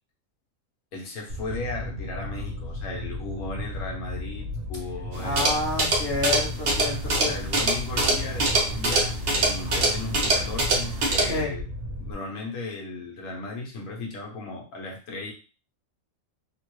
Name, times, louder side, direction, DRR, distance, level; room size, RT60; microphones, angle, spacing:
voice 1, 0.9-5.6 7.0-11.7 12.0-15.3, left 3 dB, 75° left, -1 dB, 1.3 m, -36 dB
Fire, 1.3-12.1, left 1 dB, 80° right, 1.7 m, -35 dB
sound 1, 5.1-11.4, right 2 dB, 55° right, 0.8 m, -25 dB
voice 2, 5.2-7.3 11.3-11.5, left 2 dB, 50° left, 0 dB, 1.1 m, -29 dB
3.6 x 2.2 x 3.0 m, 0.34 s
omnidirectional pair, 1.4 m